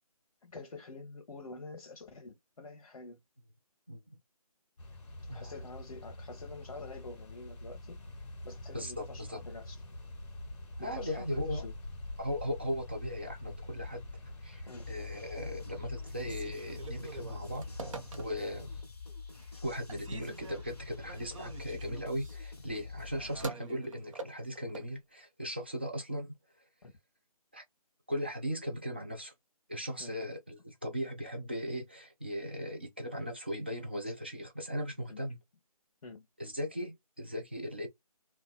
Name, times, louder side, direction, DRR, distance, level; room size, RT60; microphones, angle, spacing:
voice 1, 0.4-3.2 5.3-8.0 8.4-9.8 10.8-11.7 14.7-14.9 26.8-26.9 30.0-30.2 35.1-35.2 36.0-36.3, left 3 dB, 65° left, 0.7 m, -47 dB
sound 1, 4.8-18.8, left 2 dB, 50° left, 1.2 m, -45 dB
voice 2, 8.7-9.4 10.8-11.7 12.2-14.0 14.4-17.9 18.2-18.7 19.6-26.3 27.5-27.6 28.1-29.3 29.7-35.4 36.4-37.9, equal, 15° right, 0.3 m, -38 dB
sound 2, 14.7-23.5, left 5 dB, 10° left, 1.0 m, -46 dB
Telephone, 16.2-18.6 19.1-19.6 19.9-24.9, right 3 dB, 55° right, 0.7 m, -46 dB
2.7 x 2.2 x 2.2 m
figure-of-eight pair, 155°, 20 cm